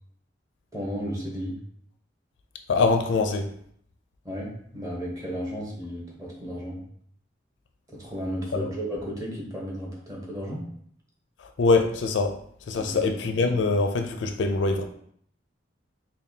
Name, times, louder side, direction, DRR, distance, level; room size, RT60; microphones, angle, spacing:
voice 1, 0.7-1.6 4.2-6.8 7.9-10.7 12.8-13.1, equal, 20° right, -3 dB, 1.0 m, -34 dB
voice 2, 2.7-3.5 11.4-12.4 12.7-14.8, left 3 dB, 70° left, 6 dB, 0.4 m, -23 dB
5.2 x 2.2 x 2.7 m, 0.65 s
head